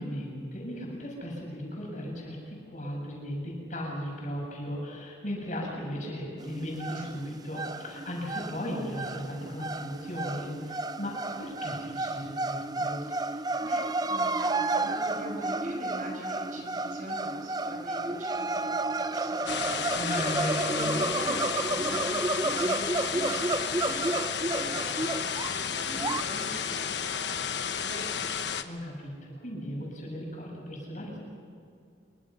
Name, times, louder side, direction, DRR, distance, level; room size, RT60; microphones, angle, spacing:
voice 1, 0.0-13.0 19.9-21.0 28.6-29.1 29.4-31.2, equal, 40° left, -2 dB, 7.8 m, -36 dB
sound 1, 6.4-26.2, right 2 dB, 20° right, 0.5 m, -31 dB
voice 2, 13.0-28.3, equal, 45° right, 1 dB, 6.0 m, -43 dB
sound 2, 19.5-28.6, left 7 dB, 65° left, 1.1 m, -32 dB
27.0 x 24.5 x 5.9 m, 2.4 s
head